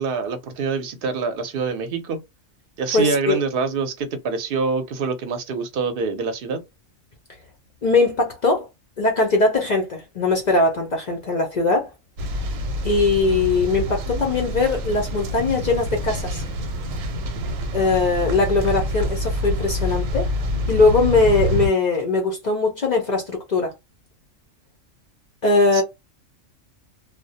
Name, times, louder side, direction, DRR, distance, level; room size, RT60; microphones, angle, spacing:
voice 1, 0.0-2.2 2.8-6.6 25.7-25.8, right 4 dB, 55° right, 0.7 m, -25 dB
voice 2, 2.9-3.4 7.8-8.7 9.0-11.9 12.8-16.4 17.7-20.3 20.7-23.7 25.4-25.8, left 3 dB, 55° left, 0.5 m, -20 dB
sound 1, 12.2-21.7, equal, 85° right, 1.0 m, -26 dB
2.3 x 2.1 x 2.6 m
omnidirectional pair, 1.3 m